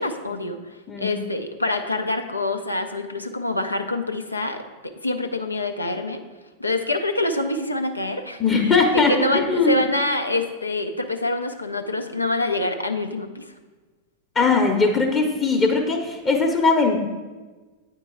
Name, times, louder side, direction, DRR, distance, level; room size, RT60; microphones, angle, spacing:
voice 1, 0.0-6.2 6.6-13.5, left 2 dB, 85° left, 6 dB, 0.5 m, -26 dB
voice 2, 0.9-1.2 8.4-9.8 14.3-17.0, left 4 dB, 25° left, 2 dB, 0.8 m, -20 dB
8.6 x 4.5 x 4.4 m, 1.3 s
figure-of-eight pair, 90°, 0 cm